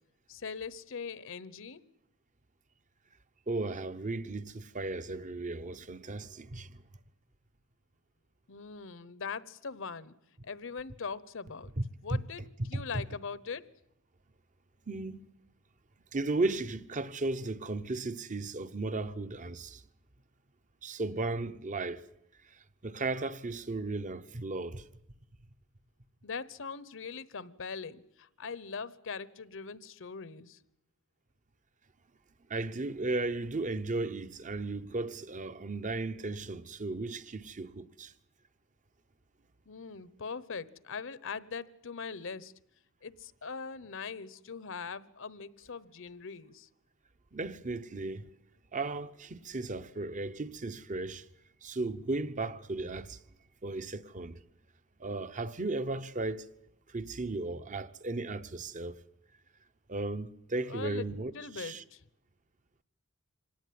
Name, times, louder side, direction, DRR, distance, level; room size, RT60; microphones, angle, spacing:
voice 1, 0.3-1.8 8.5-10.1 10.4-11.7 12.0-12.4 12.7-13.7 26.2-30.6 39.7-42.5 43.0-46.7 60.7-61.1 61.3-62.0, left 5 dB, 65° left, 1.0 m, -41 dB
voice 2, 3.5-6.8 12.1-12.2 12.7-13.0 14.9-15.3 16.1-19.8 20.8-22.0 22.5-24.9 32.5-38.1 47.3-48.3 48.7-51.3 51.6-53.2 53.6-54.4 55.0-56.5 56.9-59.0 59.9-61.8, right 2 dB, 35° right, 0.9 m, -35 dB
25.5 x 18.0 x 9.5 m
head